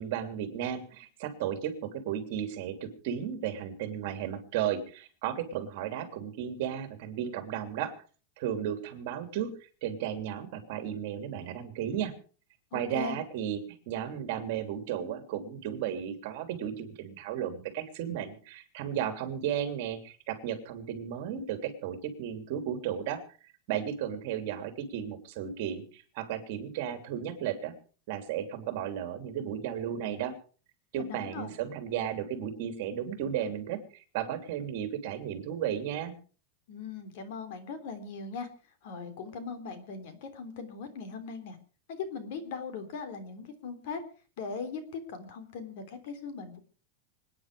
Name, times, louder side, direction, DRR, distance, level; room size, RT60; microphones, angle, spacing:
voice 1, 0.0-7.9 8.4-12.1 12.7-23.2 23.7-27.7 28.1-30.3 30.9-36.1, right 9 dB, 50° right, 7 dB, 3.1 m, -34 dB
voice 2, 12.7-13.2 31.0-31.5 36.7-38.5 38.8-41.6 41.9-44.0 44.4-46.6, left 5 dB, 55° left, 10 dB, 3.4 m, -39 dB
26.0 x 9.7 x 4.9 m, 0.39 s
supercardioid pair, 165°, 0 cm